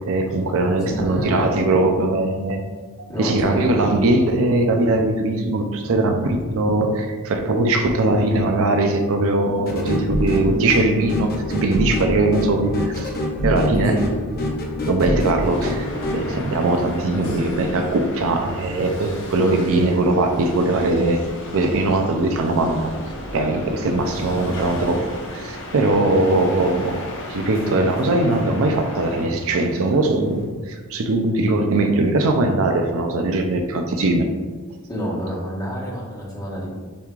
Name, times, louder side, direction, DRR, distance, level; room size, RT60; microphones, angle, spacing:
voice 1, 0.1-2.6 3.0-13.1 13.4-14.0 14.9-21.2 21.5-22.9 23.3-27.0 27.3-34.3, right 2 dB, 65° right, 5 dB, 0.5 m, -20 dB
voice 2, 0.8-1.5 3.1-3.7 13.7-14.4 34.9-36.7, equal, 15° left, -6 dB, 1.3 m, -28 dB
sound 1, 9.7-16.2, left 1 dB, 45° left, 0.7 m, -25 dB
sound 2, 15.3-30.4, left 1 dB, 60° left, 1.0 m, -35 dB
6.8 x 3.2 x 2.4 m, 1.4 s
head